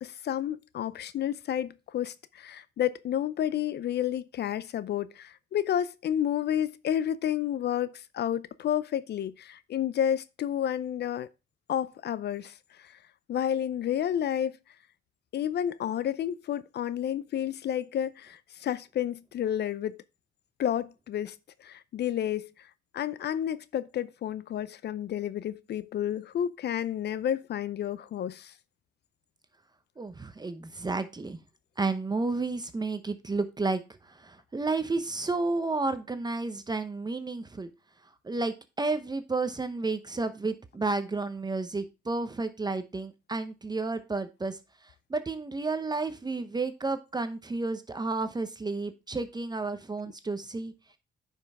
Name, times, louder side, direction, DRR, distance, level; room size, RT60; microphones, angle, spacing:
voice 1, 0.0-11.3 11.7-12.5 13.3-14.6 15.3-20.0 20.6-21.3 21.6-22.5 22.9-28.5, left 10 dB, 55° left, 0.5 m, -30 dB
voice 2, 30.0-31.4 31.8-37.7 38.2-44.6 45.1-50.7, right 3 dB, 20° right, 0.8 m, -31 dB
9.8 x 5.4 x 3.5 m
cardioid pair, 90°, 20 cm